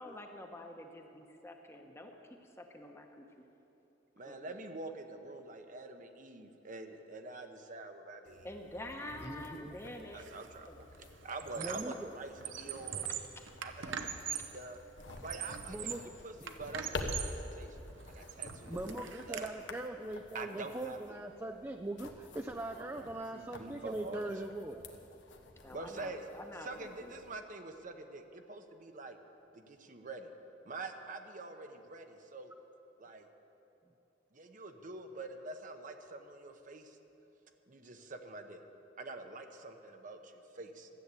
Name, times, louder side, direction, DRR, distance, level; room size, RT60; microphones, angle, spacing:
voice 1, 0.0-3.4 4.2-4.6 8.4-10.3 10.7-10.8 13.0-13.5 14.4-14.5 25.6-27.1, left 1 dB, 15° left, 3 dB, 0.9 m, -48 dB
voice 2, 4.2-8.5 10.1-13.0 13.6-14.8 15.2-17.8 18.1-18.9 19.3-19.5 20.3-21.0 22.5-24.3 25.7-26.2 26.6-29.2 29.5-30.3 30.7-32.5 33.0-33.3 34.3-37.0 37.7-38.6 39.0-40.9, right 3 dB, 45° right, 6 dB, 0.8 m, -46 dB
sound 1, 8.2-27.4, left 2 dB, 75° left, 1.0 m, -49 dB
voice 3, 9.2-9.8 11.6-12.1 15.7-16.1 18.7-24.8, right 1 dB, 15° right, 4 dB, 0.4 m, -41 dB
Squeak, 10.2-10.5 10.8-12.0 12.3-14.6 15.1-16.1 16.5-17.4 17.9-19.5, right 8 dB, 80° right, 0.7 m, -42 dB
13.0 x 8.1 x 8.2 m, 3.0 s
head